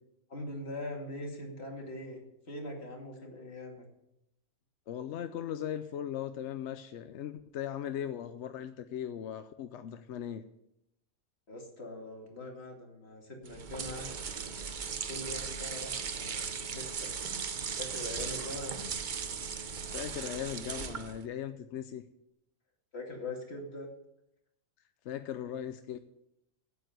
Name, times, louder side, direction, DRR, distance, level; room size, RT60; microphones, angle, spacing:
voice 1, 0.3-2.2 2.5-3.8 11.5-14.1 15.1-17.1 17.8-18.8 22.9-23.9, left 1 dB, 45° left, 0 dB, 2.7 m, -42 dB
voice 2, 4.9-10.4 19.9-22.0 25.0-26.0, left 10 dB, 65° left, 9 dB, 0.8 m, -38 dB
sound 1, 13.4-21.3, right 6 dB, 45° right, 0.6 m, -37 dB
9.2 x 8.7 x 7.8 m, 0.83 s
omnidirectional pair, 1.6 m